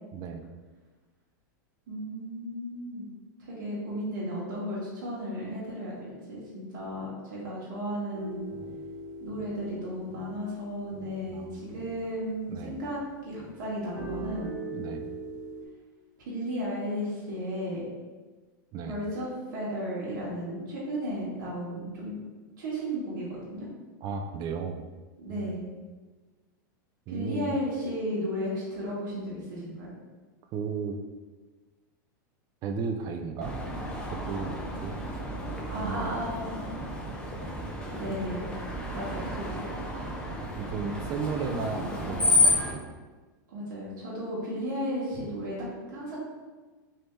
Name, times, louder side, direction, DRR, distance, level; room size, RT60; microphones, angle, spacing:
voice 1, 0.1-0.4 11.3-11.8 12.5-12.8 14.7-15.1 18.7-19.0 24.0-24.8 25.3-25.6 27.1-27.6 30.5-31.0 32.6-33.6 34.0-34.9 35.7-36.2 38.0-38.1 40.6-42.9, right 5 dB, 40° right, 6 dB, 0.4 m, -35 dB
voice 2, 1.9-3.1 3.4-8.4 9.2-13.0 13.2-14.5 16.2-17.9 18.9-22.2 22.6-23.7 25.2-25.7 27.1-29.9 35.7-36.6 37.8-39.6 43.5-46.2, equal, 70° right, -6 dB, 1.2 m, -34 dB
sound 1, 8.1-13.0 13.3-15.7, right 3 dB, 55° right, 0.8 m, -41 dB
Screech, 33.4-42.7, left 2 dB, 10° left, 0.6 m, -31 dB
3.3 x 2.7 x 3.1 m, 1.3 s
supercardioid pair, 125°, 11 cm